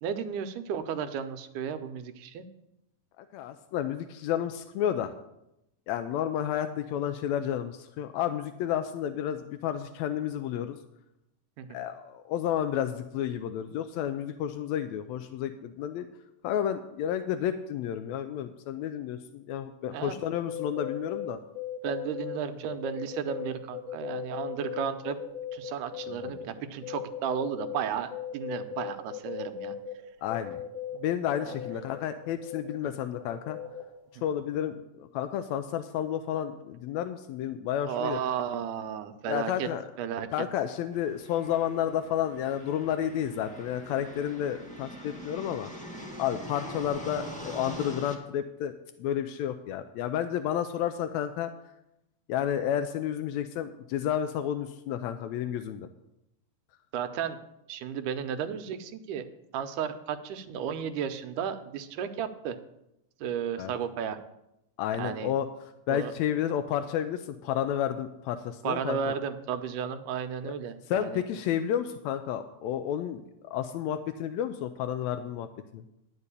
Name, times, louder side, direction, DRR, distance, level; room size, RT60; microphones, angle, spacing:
voice 1, 0.0-2.5 11.6-11.8 19.9-20.2 21.8-25.2 25.5-29.8 31.5-31.6 32.8-32.9 34.2-34.3 37.8-39.7 40.0-40.5 56.9-57.4 57.7-59.3 59.5-62.6 63.2-64.2 65.0-65.3 65.9-66.1 68.6-71.2, right 8 dB, 85° right, 9 dB, 2.3 m, -33 dB
voice 2, 3.2-5.1 5.9-10.8 11.7-16.1 16.4-21.4 26.2-26.4 30.2-30.6 31.0-33.6 34.2-38.2 39.3-39.8 40.3-45.7 46.2-48.7 49.0-51.5 52.3-55.9 63.6-63.7 64.8-65.5 65.9-69.1 70.4-70.5 70.9-75.5 75.7-75.8, left 10 dB, 85° left, 9 dB, 1.6 m, -31 dB
sound 1, 20.3-22.4 22.7-26.4 26.8-27.8 28.1-29.9 30.3-33.8, left 9 dB, 40° right, 2.4 m, -38 dB
sound 2, 40.9-48.1, equal, 5° left, 0.6 m, -43 dB
11.0 x 5.3 x 8.2 m, 0.86 s
omnidirectional pair, 3.7 m